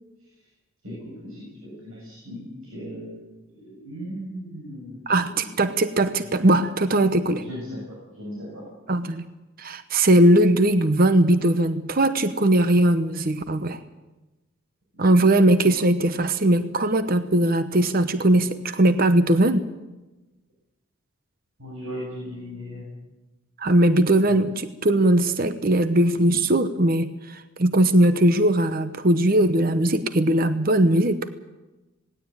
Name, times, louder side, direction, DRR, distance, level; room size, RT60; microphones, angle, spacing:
voice 1, 0.8-5.4 7.3-8.6 21.6-22.9, equal, 80° right, -3 dB, 6.9 m, -37 dB
voice 2, 5.1-7.4 8.9-9.2 9.6-13.8 15.0-19.7 23.6-31.3, right 1 dB, 45° right, 11 dB, 0.9 m, -20 dB
18.5 x 17.0 x 9.1 m, 1.1 s
head